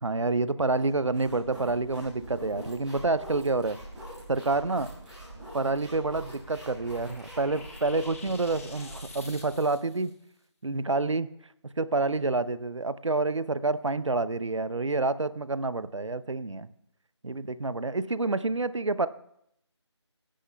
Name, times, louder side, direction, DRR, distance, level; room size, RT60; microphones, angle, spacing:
voice 1, 0.0-3.8 4.3-4.9 5.5-10.1 10.6-11.3 11.8-16.7 17.2-19.1, right 3 dB, 85° right, 16 dB, 0.6 m, -28 dB
sound 1, 0.7-9.5, right 1 dB, 5° right, 1.9 m, -44 dB
sound 2, 6.0-10.1, left 3 dB, 30° left, 1.3 m, -49 dB
21.5 x 10.0 x 2.2 m, 0.75 s
figure-of-eight pair, 160°, 15 cm